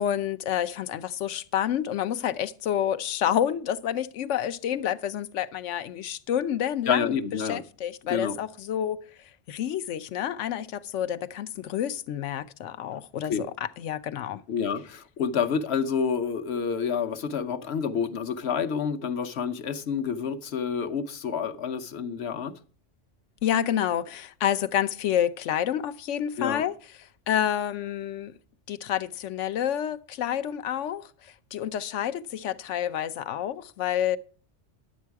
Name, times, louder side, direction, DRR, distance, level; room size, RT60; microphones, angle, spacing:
voice 1, 0.0-7.1 7.5-9.0 9.5-13.5 13.8-14.4 23.4-26.7 27.3-28.3 28.7-34.2, left 10 dB, 90° left, 1.0 m, -29 dB
voice 2, 6.9-7.6 8.0-8.4 13.2-13.5 14.5-22.5 26.4-26.7, left 6 dB, 65° left, 1.0 m, -28 dB
11.5 x 8.6 x 4.6 m
omnidirectional pair, 1.2 m